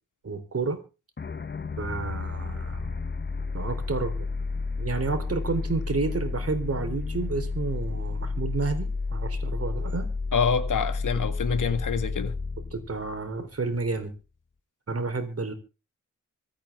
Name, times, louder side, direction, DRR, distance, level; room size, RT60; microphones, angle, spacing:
voice 1, 0.2-0.8 1.8-3.0 3.5-4.3 4.8-10.1 12.7-14.1 14.9-15.5, right 4 dB, 50° right, 4.0 m, -30 dB
sound 1, 1.2-13.9, left 4 dB, 35° left, 0.9 m, -31 dB
voice 2, 10.3-12.4, left 6 dB, 80° left, 1.9 m, -26 dB
25.5 x 9.1 x 3.8 m
wide cardioid pair, 95°, 31 cm